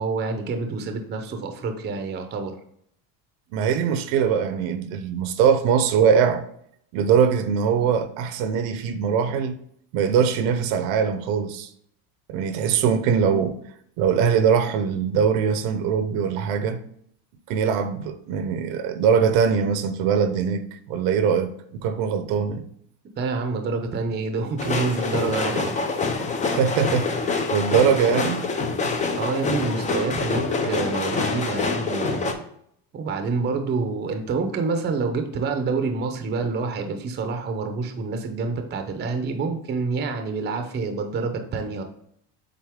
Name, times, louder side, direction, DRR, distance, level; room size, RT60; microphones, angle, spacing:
voice 1, 0.0-2.6 23.2-25.7 29.2-32.3 32.9-41.8, right 4 dB, 20° right, 0.6 m, -27 dB
voice 2, 3.5-6.5 6.9-9.6 9.9-11.7 12.3-13.6 14.0-16.8 17.5-22.6 26.4-28.4, right 7 dB, 60° right, 0.8 m, -22 dB
sound 1, 24.6-32.3, left 4 dB, 15° left, 0.4 m, -26 dB
7.6 x 4.1 x 3.6 m
cardioid pair, 140°, 50 cm